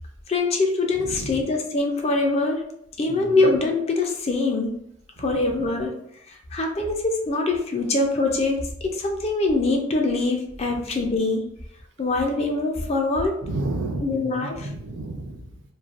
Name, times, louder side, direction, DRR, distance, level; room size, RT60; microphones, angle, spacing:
voice 1, 0.3-2.7 3.0-4.7 5.2-6.0 6.3-8.6 8.8-11.5 12.0-13.4 14.0-14.6, left 3 dB, 30° left, 2 dB, 0.3 m, -23 dB
voice 2, 0.9-1.5 3.1-3.5 5.2-5.6 10.6-10.8 13.4-15.6, right 2 dB, 60° right, 4 dB, 0.4 m, -32 dB
3.1 x 2.1 x 2.4 m, 0.73 s
head